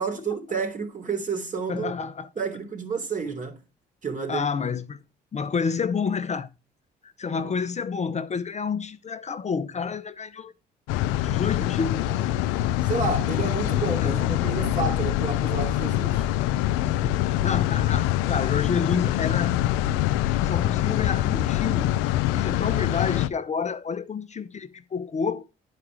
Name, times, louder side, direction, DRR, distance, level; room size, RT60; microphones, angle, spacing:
voice 1, 0.0-1.9 2.4-3.5 4.0-4.5 7.4-7.5 12.8-16.3, right 5 dB, 40° right, 3.0 m, -30 dB
voice 2, 1.7-2.3 4.3-5.0 5.3-6.5 7.0-10.5 11.2-12.3 12.9-13.0 14.0-14.5 17.0-19.6 20.4-25.4, left 5 dB, 35° left, 0.7 m, -29 dB
sound 1, 10.9-23.3, left 13 dB, 90° left, 0.4 m, -24 dB
10.5 x 4.9 x 4.7 m
supercardioid pair, 65°, 20 cm